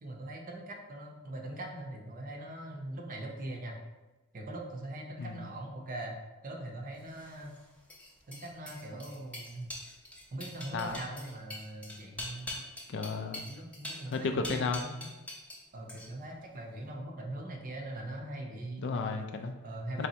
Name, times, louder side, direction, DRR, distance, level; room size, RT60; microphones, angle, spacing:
voice 1, 0.0-3.8 4.3-6.2 6.4-7.6 8.3-9.7 10.3-12.6 13.4-15.1 15.7-18.9 19.6-20.1, right 1 dB, 40° right, 1 dB, 0.6 m, -41 dB
sound 1, 7.1-15.6 15.9-16.4, left 1 dB, 5° left, 0.7 m, -44 dB
voice 2, 12.9-13.5 14.1-14.8 18.8-19.5 20.0-20.1, left 4 dB, 55° left, 6 dB, 0.4 m, -33 dB
4.2 x 3.3 x 2.8 m, 1.1 s
head